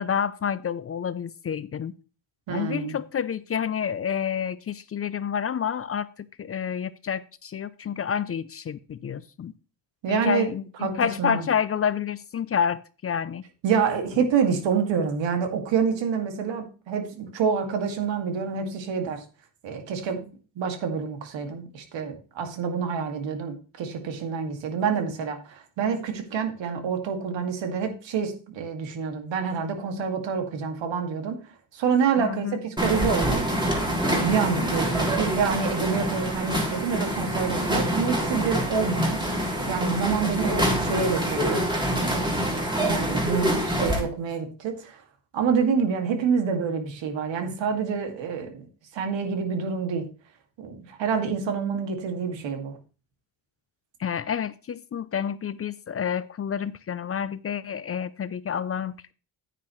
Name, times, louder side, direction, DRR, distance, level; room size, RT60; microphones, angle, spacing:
voice 1, 0.0-1.9 2.5-9.5 10.1-13.4 32.2-32.6 54.0-59.1, left 8 dB, 35° left, 0.5 m, -29 dB
voice 2, 2.5-3.0 10.0-10.5 10.8-11.5 13.6-19.2 19.6-31.4 31.7-33.4 34.0-41.7 41.9-42.2 42.9-45.0 45.3-48.7 48.9-50.0 50.6-52.7, right 6 dB, 80° right, 2.3 m, -27 dB
sound 1, 32.8-44.0, equal, 10° right, 3.2 m, -26 dB
10.0 x 9.6 x 3.1 m
cardioid pair, 120°, 44 cm